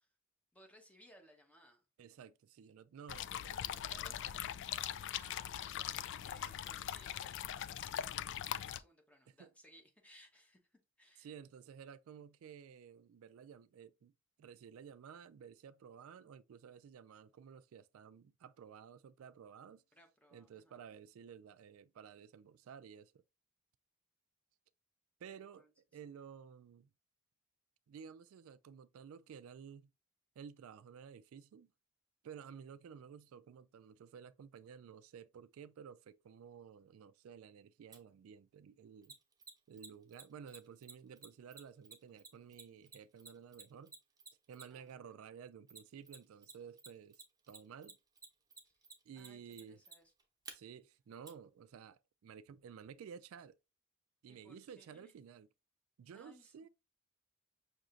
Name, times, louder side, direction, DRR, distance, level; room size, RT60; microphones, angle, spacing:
voice 1, 0.5-1.8 3.9-4.5 4.8-11.3 19.9-20.8 25.3-25.7 44.7-45.0 48.6-48.7 49.1-50.1 54.3-55.1 56.1-56.5, equal, 5° left, 1.0 m, -64 dB
voice 2, 2.0-4.1 9.3-9.5 11.2-14.1 14.4-19.8 20.3-23.2 25.2-25.6 25.9-26.9 27.9-29.9 30.4-31.7 32.2-39.2 39.7-43.9 44.5-48.0 49.1-49.8 50.5-53.6 54.2-55.5 56.0-56.7, right 7 dB, 75° right, 0.3 m, -54 dB
sound 1, 3.1-8.8, left 10 dB, 60° left, 0.3 m, -41 dB
Mechanisms, 37.9-38.0 39.0-44.9 45.7-46.5 46.8-50.5 51.3-51.4, right 5 dB, 20° right, 0.9 m, -53 dB
6.2 x 2.9 x 2.5 m
head